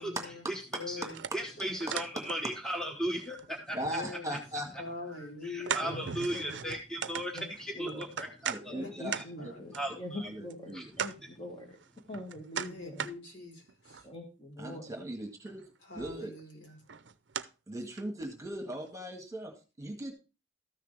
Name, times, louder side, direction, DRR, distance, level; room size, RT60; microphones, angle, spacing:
voice 1, 0.0-0.5 0.7-1.2 1.6-1.9 2.8-3.0 3.8-4.4 4.8-6.2 8.8-9.6 12.7-14.1 15.8-16.8, left 3 dB, 75° left, -2 dB, 4.6 m, -44 dB
sound 1, 1.1-2.8 3.0-4.5 4.9-5.0 5.6-8.6 9.1-9.2 9.7-9.8 10.5-10.6 10.9-11.2 11.7-13.1 13.6-14.1 15.5-15.6 16.0-16.4 16.9-17.5 18.0-18.1 18.7-18.8, right 7 dB, 65° right, 0.6 m, -38 dB
voice 2, 1.3-4.4 5.2-9.2 9.7-10.3 10.7-10.8, right 1 dB, 5° left, 2 dB, 1.2 m, -37 dB
voice 3, 3.7-4.7 8.4-9.1 10.3-10.9 14.6-15.6 15.9-16.3 17.7-20.1, right 1 dB, 15° right, 4 dB, 1.7 m, -39 dB
voice 4, 5.8-6.6 7.3-7.5 7.7-8.0 8.7-11.8 12.1-13.0 14.0-15.0, left 1 dB, 30° left, 2 dB, 1.8 m, -43 dB
13.5 x 6.6 x 3.2 m, 0.30 s
head